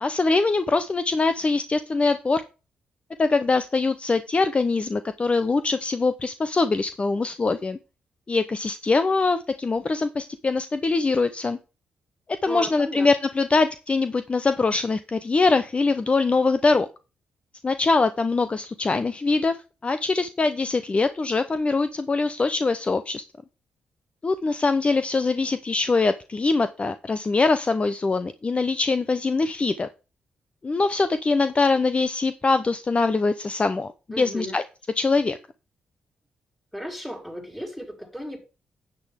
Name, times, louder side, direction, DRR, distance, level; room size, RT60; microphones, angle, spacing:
voice 1, 0.0-2.4 3.2-7.8 8.3-11.6 12.4-16.9 17.6-19.6 19.8-23.2 24.2-29.9 30.6-33.9 34.2-34.6 35.0-35.4, left 3 dB, 35° left, 11 dB, 0.8 m, -23 dB
voice 2, 12.4-13.1 34.1-34.6 36.7-38.4, equal, 5° left, 1 dB, 4.5 m, -35 dB
9.6 x 8.5 x 3.6 m, 0.31 s
supercardioid pair, 55°, 3 cm